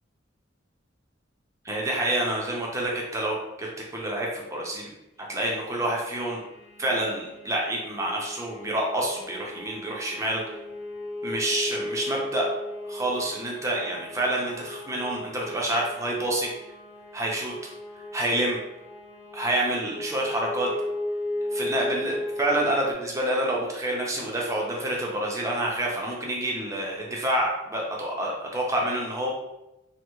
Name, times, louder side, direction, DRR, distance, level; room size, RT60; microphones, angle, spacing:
voice 1, 1.6-4.9 5.3-6.4 6.8-10.4 11.2-12.5 12.9-16.5 17.1-17.5 18.1-18.6 19.3-20.7 21.5-29.3, right 1 dB, 15° right, -2 dB, 0.6 m, -28 dB
sound 1, 5.3-22.9, left 1 dB, 40° left, 0.5 m, -36 dB
3.3 x 2.1 x 3.0 m, 0.93 s
head